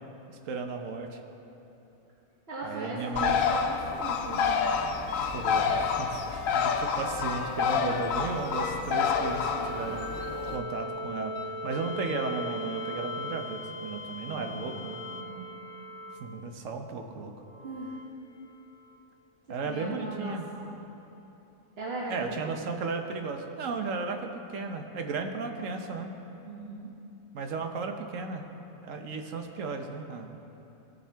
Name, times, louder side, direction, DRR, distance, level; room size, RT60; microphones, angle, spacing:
voice 1, 0.3-1.2 2.6-3.4 5.3-11.4 11.6-15.0 16.2-17.3 19.5-20.4 22.1-26.1 27.3-28.4 28.8-30.3, right 4 dB, 75° right, 5 dB, 1.2 m, -35 dB
voice 2, 2.5-4.5 6.1-6.5 14.3-14.9 15.2-15.6 17.6-17.9 19.6-20.8 21.8-22.5 26.4-26.9, right 2 dB, 50° right, -6 dB, 1.3 m, -39 dB
Bird, 3.2-10.6, left 6 dB, 85° left, 1.0 m, -28 dB
sound 1, 4.4-5.4 5.8-16.6 17.4-19.0 20.7-20.8, left 1 dB, 50° left, 0.8 m, -39 dB
17.5 x 7.2 x 3.4 m, 3.0 s
omnidirectional pair, 1.4 m